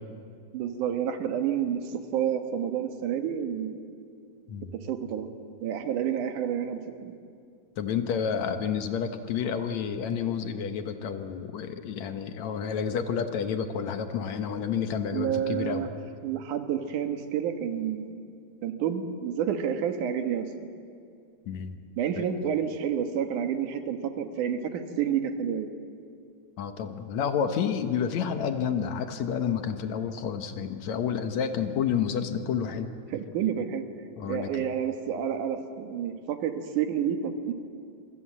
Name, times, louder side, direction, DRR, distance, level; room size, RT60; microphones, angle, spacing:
voice 1, 0.5-3.8 4.7-5.3 5.6-7.2 15.1-15.9 16.2-18.2 18.6-20.7 22.0-25.7 33.1-33.8 34.3-37.5, right 8 dB, 85° right, 7 dB, 3.0 m, -29 dB
voice 2, 7.8-15.9 21.5-21.8 22.2-22.3 26.6-32.9 34.2-34.7, left 7 dB, 70° left, 8 dB, 2.4 m, -30 dB
26.5 x 24.0 x 7.5 m, 2.4 s
omnidirectional pair, 3.5 m